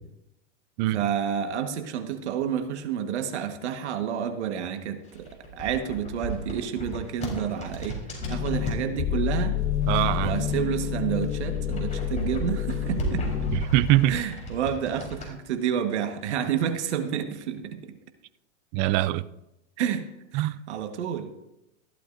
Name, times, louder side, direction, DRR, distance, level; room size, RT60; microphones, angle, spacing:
voice 1, 0.9-8.0 8.3-9.6 10.2-13.2 14.1-18.0 19.8-21.3, right 8 dB, 70° right, 1.5 m, -29 dB
sound 1, 5.0-8.9 9.6-10.9 11.2-15.3, right 1 dB, 20° left, 4.1 m, -35 dB
sound 2, 8.2-13.6, left 10 dB, 75° left, 2.1 m, -28 dB
voice 2, 9.9-10.4 13.5-14.2 18.7-19.2 20.3-20.6, right 16 dB, 40° right, 0.5 m, -23 dB
15.0 x 11.5 x 2.6 m
hypercardioid pair, 110°, 35 cm